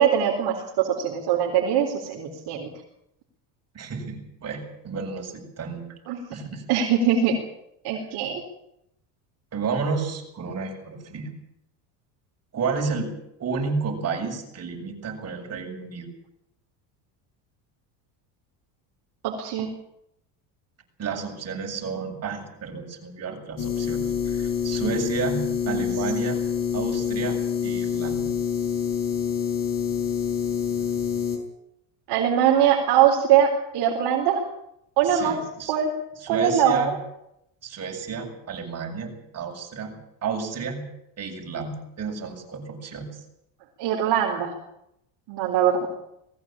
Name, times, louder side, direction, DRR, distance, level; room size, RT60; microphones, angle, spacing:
voice 1, 0.0-2.7 6.1-6.2 6.7-7.4 7.8-8.4 19.2-19.7 25.7-25.8 32.1-34.4 35.0-35.4 35.7-35.9 36.3-36.8 43.8-44.5 45.3-46.0, right 9 dB, 60° right, 1 dB, 4.1 m, -22 dB
voice 2, 3.7-5.9 6.3-6.6 9.5-11.3 12.5-13.1 13.4-16.1 21.0-26.4 26.7-28.3 35.0-35.7 36.2-36.9 37.6-39.9 40.2-40.8 41.2-43.2, right 5 dB, 35° right, 1 dB, 7.3 m, -31 dB
sound 1, 23.6-31.4, left 8 dB, 45° left, 6.2 m, -26 dB
20.5 x 16.5 x 8.9 m, 0.79 s
cardioid pair, 130°, 44 cm